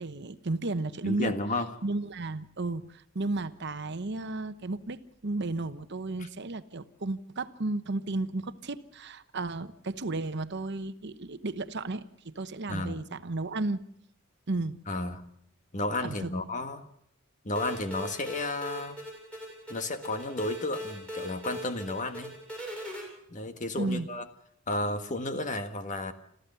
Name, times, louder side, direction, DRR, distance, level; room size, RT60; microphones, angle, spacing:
voice 1, 0.0-1.4 1.8-13.8 14.5-14.8 16.0-16.3 23.8-24.1, right 2 dB, 55° right, 12 dB, 1.0 m, -33 dB
voice 2, 1.0-1.7 12.7-13.1 14.9-15.2 15.7-16.8 17.4-19.0 19.7-22.4 23.3-24.2 24.7-26.1, left 2 dB, 40° left, 8 dB, 1.7 m, -32 dB
sound 1, 17.5-23.0, equal, 5° left, 7.5 m, -40 dB
26.5 x 14.5 x 6.9 m, 0.71 s
head